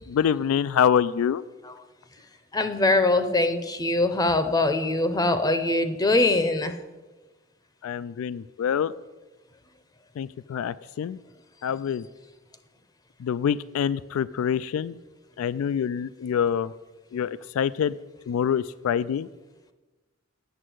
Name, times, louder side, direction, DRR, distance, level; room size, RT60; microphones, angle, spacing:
voice 1, 0.1-1.4 7.8-8.9 10.2-11.2 11.6-12.1 13.2-14.9 15.4-16.7 17.1-17.9 18.3-19.3, left 8 dB, 85° left, 17 dB, 0.3 m, -26 dB
voice 2, 2.5-6.7, left 2 dB, 20° left, 9 dB, 0.6 m, -22 dB
8.1 x 7.4 x 7.7 m, 1.2 s
head